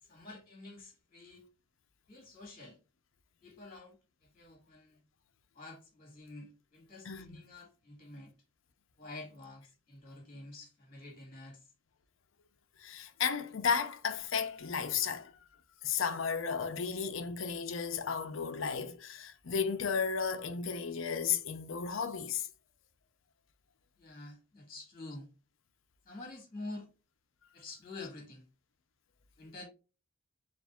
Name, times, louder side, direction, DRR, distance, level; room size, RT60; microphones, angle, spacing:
voice 1, 0.0-1.4 2.1-2.8 3.4-5.0 5.5-8.3 9.0-11.7 24.0-25.3 26.0-26.9 27.5-28.5 29.4-29.7, left 2 dB, 30° left, 1.6 m, -48 dB
voice 2, 7.0-7.4 12.8-15.3 15.8-22.5, left 6 dB, 85° left, 0.6 m, -34 dB
6.9 x 2.6 x 2.3 m
head